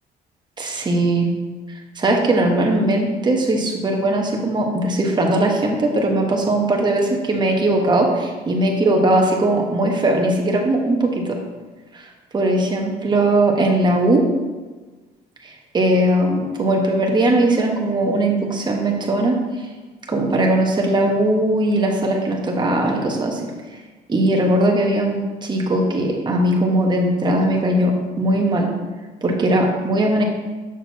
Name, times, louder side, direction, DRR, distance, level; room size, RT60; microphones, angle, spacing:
voice 1, 0.6-1.3 2.0-11.4 11.9-12.0 12.3-14.3 15.4-19.4 20.1-23.5 24.1-28.7 29.2-30.2, right 1 dB, 25° right, 1 dB, 1.2 m, -19 dB
6.5 x 6.2 x 2.8 m, 1.3 s
cardioid pair, 110°, 17 cm